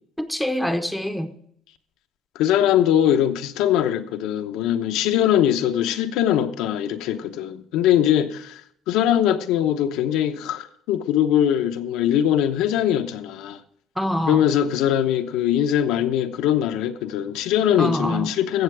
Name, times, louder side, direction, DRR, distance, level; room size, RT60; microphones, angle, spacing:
voice 1, 0.2-1.3 14.0-14.4 17.8-18.3, equal, ahead, 0.7 m, -25 dB
voice 2, 2.3-8.6 8.9-13.6 14.3-18.6, left 10 dB, 70° left, 0.9 m, -21 dB
14.5 x 7.6 x 4.8 m
cardioid pair, 180°, 0 cm